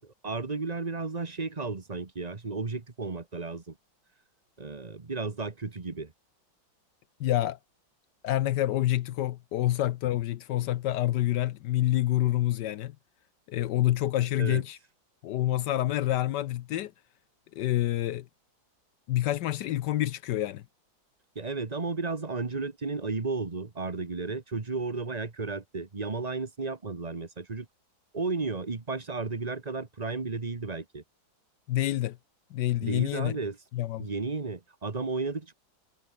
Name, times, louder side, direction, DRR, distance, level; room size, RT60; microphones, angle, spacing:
voice 1, 0.2-3.8 4.6-6.1 14.4-14.6 21.3-27.7 28.1-31.0 32.8-33.6 34.0-35.5, right 3 dB, 20° right, 1.4 m, -33 dB
voice 2, 7.2-7.6 8.2-12.9 13.5-14.8 15.2-16.9 17.5-18.3 19.1-20.6 31.7-32.2 32.5-33.3 33.7-34.1, left 14 dB, 70° left, 1.1 m, -27 dB
omnidirectional pair, 2.2 m